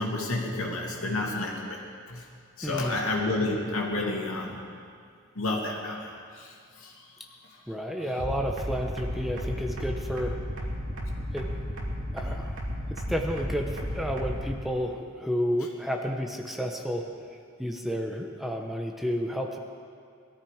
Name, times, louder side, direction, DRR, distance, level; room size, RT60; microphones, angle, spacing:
voice 1, 0.0-1.8 2.1-2.2 2.6-4.6 5.3-6.9, left 2 dB, 85° left, -1 dB, 2.7 m, -30 dB
voice 2, 2.6-3.0 7.7-10.4 11.3-11.5 12.1-12.6 12.9-17.0 17.6-19.6, equal, ahead, 2 dB, 1.0 m, -31 dB
sound 1, 8.2-14.5, equal, 70° right, 2.8 m, -33 dB
21.0 x 14.0 x 5.0 m, 2.3 s
head